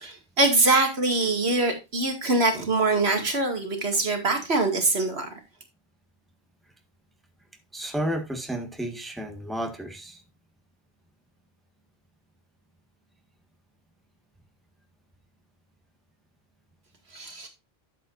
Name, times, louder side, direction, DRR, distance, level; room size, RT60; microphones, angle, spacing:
voice 1, 0.0-5.3 17.1-17.5, right 2 dB, 80° right, 2.5 m, -23 dB
voice 2, 7.7-10.2, right 1 dB, ahead, 1.6 m, -32 dB
12.0 x 7.6 x 2.6 m
omnidirectional pair, 1.1 m